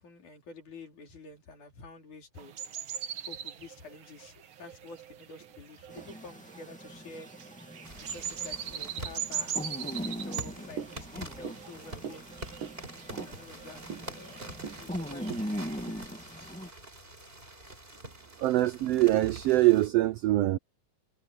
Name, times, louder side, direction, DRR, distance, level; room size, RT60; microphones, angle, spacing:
voice 1, 0.0-2.6 3.2-7.3 8.0-12.3 13.2-15.4, left 3 dB, 80° left, 6.0 m, -49 dB
sound 1, 2.4-15.9, right 8 dB, 55° right, 1.6 m, -41 dB
sound 2, 5.9-16.7, equal, 5° left, 1.7 m, -41 dB
sound 3, 7.8-19.9, right 1 dB, 20° right, 4.5 m, -46 dB
voice 2, 18.4-20.6, right 17 dB, 80° right, 1.4 m, -23 dB
omnidirectional pair, 3.4 m